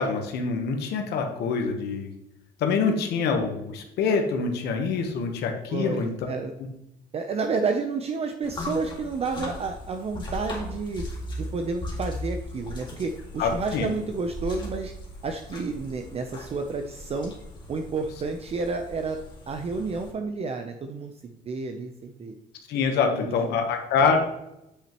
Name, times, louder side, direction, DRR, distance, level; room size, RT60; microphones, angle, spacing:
voice 1, 0.0-2.1 2.6-6.1 13.4-13.9 22.7-24.2, left 5 dB, 75° left, 4 dB, 1.1 m, -25 dB
voice 2, 5.7-6.5 7.1-11.0 11.4-14.9 15.2-17.3 17.7-19.2 19.5-22.3 23.0-23.6, right 4 dB, 35° right, 5 dB, 0.6 m, -30 dB
sound 1, 8.4-20.1, left 2 dB, 25° left, 1.9 m, -38 dB
8.1 x 5.8 x 3.0 m, 0.88 s
cardioid pair, 110°, 17 cm